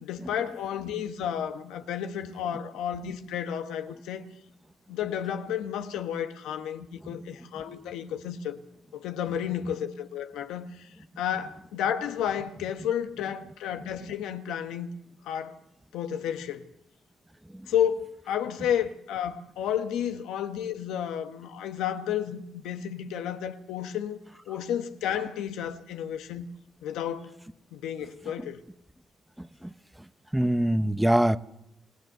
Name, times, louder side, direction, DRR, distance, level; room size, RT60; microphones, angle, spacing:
voice 1, 0.0-4.3 4.9-8.6 8.9-10.9 11.2-14.9 15.2-15.6 15.9-16.7 17.7-24.2 24.5-26.5 26.8-27.3 27.7-28.6, left 9 dB, 90° left, 1.4 m, -32 dB
voice 2, 29.4-29.7 30.3-31.4, right 1 dB, 5° right, 0.9 m, -24 dB
28.0 x 16.5 x 6.8 m
cardioid pair, 90°, 0 cm